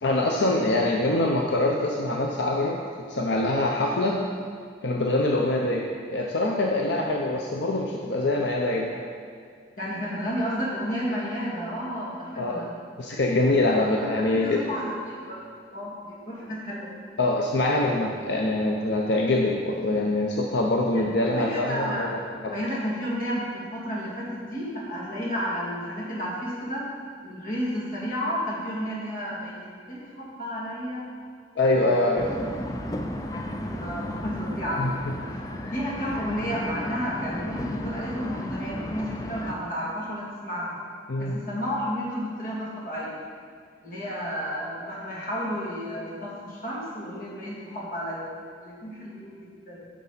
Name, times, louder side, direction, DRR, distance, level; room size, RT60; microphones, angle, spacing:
voice 1, 0.0-2.8 3.1-4.2 4.8-5.8 6.1-9.0 12.4-12.6 13.0-14.6 17.2-22.2 31.6-32.3 34.8-34.9 41.1-41.4, left 2 dB, 85° left, -1 dB, 0.7 m, -24 dB
voice 2, 9.8-12.7 13.7-15.4 15.7-16.9 20.9-22.2 22.5-26.9 27.2-31.1 33.0-40.8 41.2-43.2 43.8-48.3 48.6-49.9, equal, 50° left, -6 dB, 2.4 m, -32 dB
sound 1, 32.2-39.5, left 1 dB, 20° left, 0.4 m, -34 dB
10.0 x 6.2 x 4.1 m, 2.1 s
head